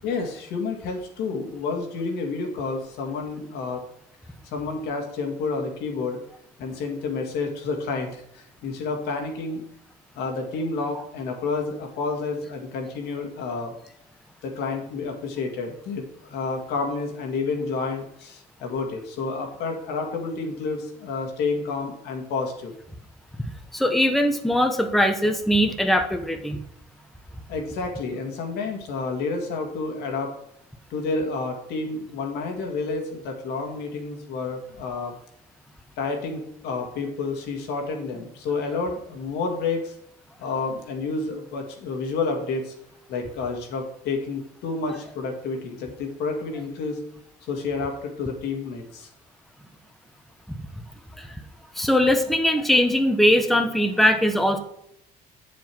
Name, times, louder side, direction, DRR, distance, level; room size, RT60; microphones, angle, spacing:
voice 1, 0.0-3.8 4.4-6.2 6.6-9.6 10.2-13.7 14.4-22.7 27.5-30.3 30.9-35.2 36.0-39.9 40.4-42.7 43.1-47.0 47.5-49.1, left 4 dB, 80° left, 3 dB, 2.1 m, -30 dB
voice 2, 23.7-26.6 51.2-51.3 51.8-54.6, equal, ahead, 5 dB, 1.0 m, -21 dB
7.9 x 7.2 x 4.5 m, 0.76 s
cardioid pair, 110°, 17 cm